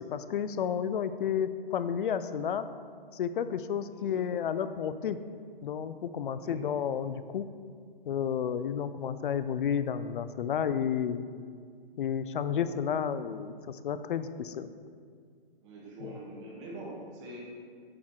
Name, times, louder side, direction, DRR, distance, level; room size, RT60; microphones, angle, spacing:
voice 1, 0.0-2.7 3.1-5.2 5.6-7.5 8.1-11.2 12.0-14.7, left 8 dB, 60° left, 12 dB, 0.4 m, -31 dB
voice 2, 15.6-17.4, right 1 dB, 30° right, -4 dB, 1.4 m, -44 dB
8.5 x 3.7 x 4.6 m, 2.1 s
hypercardioid pair, 150°, 29 cm